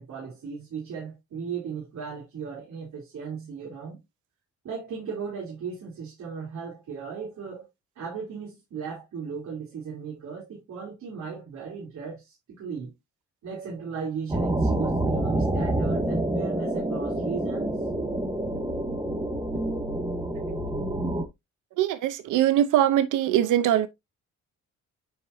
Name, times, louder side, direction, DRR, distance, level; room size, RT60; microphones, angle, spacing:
voice 1, 0.0-4.0 4.6-7.7 8.0-12.9 13.4-17.7 19.5-19.6, right 6 dB, 70° right, 3.5 m, -36 dB
sound 1, 14.3-21.2, right 1 dB, 15° right, 1.9 m, -27 dB
voice 2, 21.8-23.9, right 11 dB, 90° right, 0.8 m, -22 dB
8.1 x 4.7 x 2.7 m
cardioid pair, 90°, 30 cm